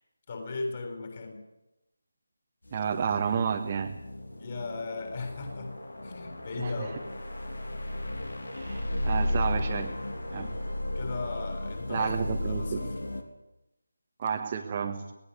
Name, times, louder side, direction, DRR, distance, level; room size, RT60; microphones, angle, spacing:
voice 1, 0.3-1.4 4.4-5.7 6.0-7.0 8.6-8.8 10.3-10.6 10.9-12.9, left 3 dB, 35° left, 4 dB, 7.6 m, -37 dB
sound 1, 2.7-13.2, left 1 dB, 65° left, 3.6 m, -34 dB
voice 2, 2.7-4.0 6.6-6.9 8.5-9.9 10.3-10.5 11.9-12.9 14.2-15.0, right 6 dB, 25° right, 1 dB, 1.6 m, -31 dB
26.5 x 19.0 x 8.3 m, 0.92 s
figure-of-eight pair, 160°, 0 cm